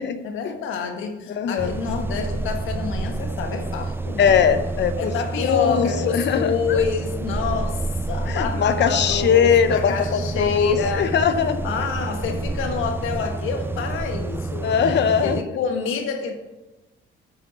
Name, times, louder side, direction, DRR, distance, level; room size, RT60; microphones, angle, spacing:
voice 1, 0.2-4.4 5.0-7.8 8.1-11.1 11.6-16.3, left 6 dB, 85° left, 4 dB, 1.5 m, -28 dB
voice 2, 1.4-1.7 4.2-5.1 5.4-6.8 8.3-11.6 14.6-15.4, left 7 dB, 60° left, 10 dB, 0.7 m, -20 dB
sound 1, 1.6-15.4, right 3 dB, 10° right, 0.4 m, -29 dB
8.8 x 5.8 x 6.4 m, 1.1 s
cardioid pair, 90°, 20 cm